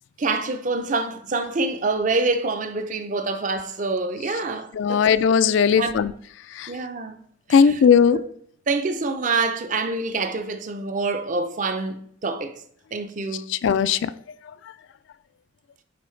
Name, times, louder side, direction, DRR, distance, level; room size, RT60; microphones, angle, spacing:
voice 1, 0.2-5.0 5.7-6.0 6.7-7.2 7.5-7.7 8.1-8.3 8.7-12.6 12.9-13.5, right 3 dB, 40° right, 0.5 m, -26 dB
voice 2, 4.7-6.1 6.5-6.7 7.5-8.2 13.5-14.1, left 6 dB, 70° left, 0.3 m, -18 dB
9.2 x 3.8 x 3.2 m
head